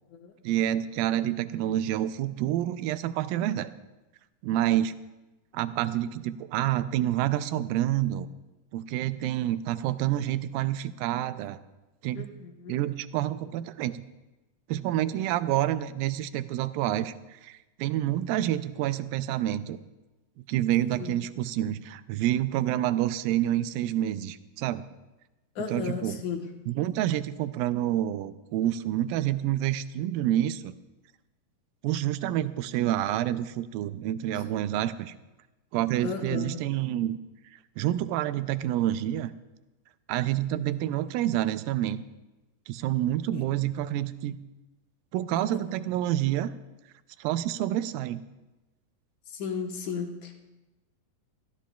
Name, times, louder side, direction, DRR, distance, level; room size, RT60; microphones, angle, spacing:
voice 1, 0.4-3.7 4.4-4.9 5.5-8.3 8.7-11.6 12.0-12.3 12.7-14.0 14.7-19.8 20.5-24.8 25.7-26.2 26.7-30.7 31.8-35.1 35.7-37.2 37.5-39.3 40.1-42.0 42.7-44.4 45.1-46.5 47.2-48.2, right 13 dB, 85° right, 12 dB, 2.3 m, -28 dB
voice 2, 12.1-12.8 20.9-21.2 25.6-26.5 34.3-34.4 36.0-36.6 43.3-43.5 45.3-45.6 49.3-50.4, left 6 dB, 65° left, 3 dB, 2.2 m, -35 dB
22.5 x 14.5 x 2.3 m, 1.1 s
omnidirectional pair, 4.1 m